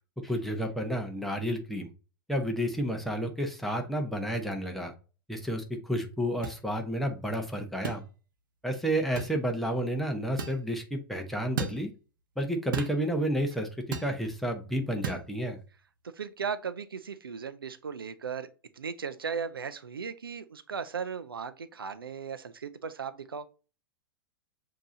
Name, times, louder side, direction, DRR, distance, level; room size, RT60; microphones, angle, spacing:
voice 1, 0.2-1.9 2.3-4.9 5.3-8.0 8.6-11.9 12.4-15.6, equal, ahead, 0.9 m, -31 dB
sound 1, 6.4-6.6 7.8-8.0 9.2-9.4 10.4-10.6 11.6-11.8 12.7-13.0 13.9-14.1 15.0-15.2, right 5 dB, 65° right, 0.9 m, -34 dB
voice 2, 16.2-18.5 18.8-23.5, right 6 dB, 85° right, 0.4 m, -37 dB
7.0 x 2.8 x 2.6 m
figure-of-eight pair, 105°, 12 cm